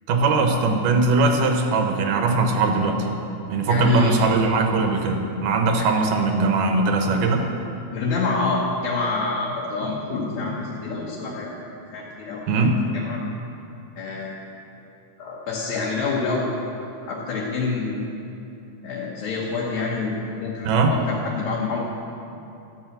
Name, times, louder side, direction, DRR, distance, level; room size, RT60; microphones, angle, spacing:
voice 1, 0.1-3.1 3.5-7.5 12.5-12.8 20.6-20.9, right 3 dB, 80° right, 4 dB, 2.5 m, -20 dB
voice 2, 3.7-4.2 5.8-5.9 7.9-11.5 11.9-12.5 12.9-13.2 14.0-14.3 15.2-16.5 17.1-18.1 18.8-22.0, left 3 dB, 65° left, -5 dB, 2.4 m, -27 dB
12.5 x 5.6 x 7.7 m, 2.8 s
omnidirectional pair, 3.8 m